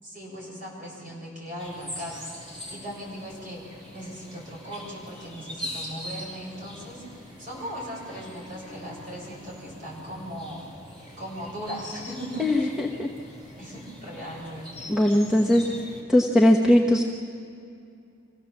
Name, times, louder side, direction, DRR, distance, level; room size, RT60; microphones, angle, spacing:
voice 1, 0.0-2.3 2.7-3.6 3.9-10.6 11.2-12.7 13.6-15.6, equal, 40° right, -4 dB, 6.8 m, -38 dB
sound 1, 1.6-16.0, left 1 dB, 25° right, 4.0 m, -42 dB
voice 2, 12.4-13.1 14.9-15.6 16.1-17.1, left 1 dB, 5° right, 0 dB, 1.1 m, -20 dB
25.5 x 16.5 x 7.2 m, 2.5 s
head